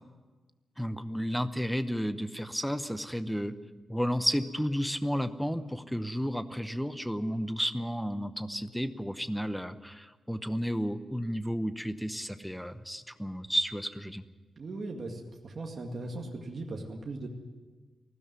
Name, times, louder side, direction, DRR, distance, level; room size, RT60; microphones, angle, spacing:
voice 1, 0.8-3.5 3.9-14.2, equal, ahead, 11 dB, 0.8 m, -32 dB
voice 2, 14.6-17.3, right 2 dB, 40° right, 0 dB, 2.1 m, -38 dB
19.5 x 16.0 x 9.5 m, 1.3 s
wide cardioid pair, 170°, 0 cm